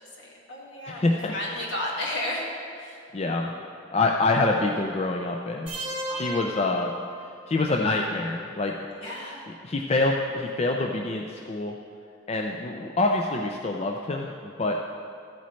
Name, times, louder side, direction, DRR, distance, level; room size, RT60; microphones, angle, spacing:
voice 1, 0.0-3.1 6.1-6.4 8.9-9.4 12.3-12.4, left 1 dB, 70° left, -4 dB, 2.0 m, -34 dB
voice 2, 0.9-1.3 3.1-3.5 3.9-5.7 6.2-6.9 7.5-8.7 9.6-11.7 12.3-14.8, left 2 dB, 30° left, 1 dB, 0.4 m, -26 dB
sound 1, 5.7-7.6, equal, 30° right, 2.4 m, -35 dB
14.0 x 8.2 x 3.2 m, 2.3 s
head